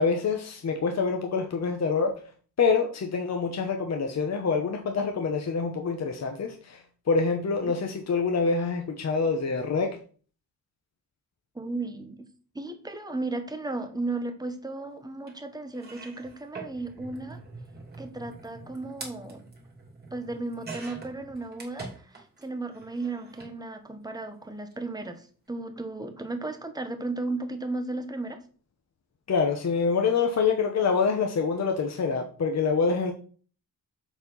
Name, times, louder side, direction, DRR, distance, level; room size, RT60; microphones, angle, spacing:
voice 1, 0.0-2.1 2.6-9.9 29.3-33.1, left 5 dB, 45° left, 3 dB, 1.0 m, -26 dB
voice 2, 11.5-12.3 12.5-17.4 18.0-19.5 20.1-28.4, right 2 dB, 10° right, 6 dB, 1.0 m, -35 dB
sound 1, 15.3-15.4 15.7-22.5 22.7-23.5 24.6-24.7 25.0-25.1, right 3 dB, 25° right, 2.7 m, -44 dB
7.2 x 4.4 x 5.5 m, 0.41 s
wide cardioid pair, 135°, 35 cm